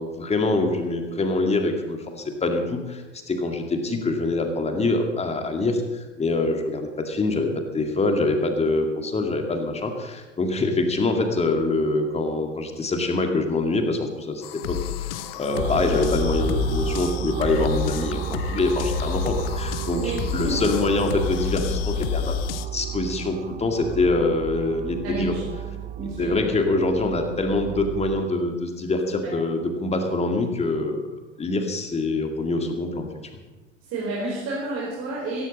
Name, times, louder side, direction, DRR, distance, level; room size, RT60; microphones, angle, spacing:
voice 1, 0.0-14.8 15.1-22.4 22.7-25.3 26.0-33.1, left 2 dB, 15° left, 5 dB, 2.2 m, -25 dB
sound 1, 14.4-22.7, left 16 dB, 50° left, 0.8 m, -30 dB
zonged out, 15.5-28.2, right 11 dB, 20° right, 0.5 m, -32 dB
voice 2, 19.9-20.5 25.0-26.3 29.2-29.3 33.9-35.5, right 2 dB, 40° right, -5 dB, 4.3 m, -31 dB
16.5 x 15.0 x 4.2 m, 1.2 s
figure-of-eight pair, 80°, 36 cm